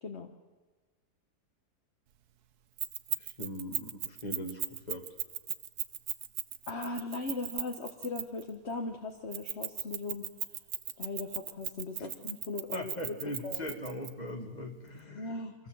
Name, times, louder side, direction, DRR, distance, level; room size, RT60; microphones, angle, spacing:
Keys jangling, 2.8-8.5 9.3-14.1, right 10 dB, 75° right, 1.4 m, -36 dB
voice 1, 3.2-5.1 12.0-12.1 12.7-15.4, left 1 dB, 25° left, 4 dB, 2.4 m, -40 dB
voice 2, 6.7-10.2 11.0-13.1 13.4-13.7 15.1-15.5, left 3 dB, 45° left, 4 dB, 1.5 m, -38 dB
25.0 x 16.5 x 7.9 m, 1.4 s
omnidirectional pair, 1.7 m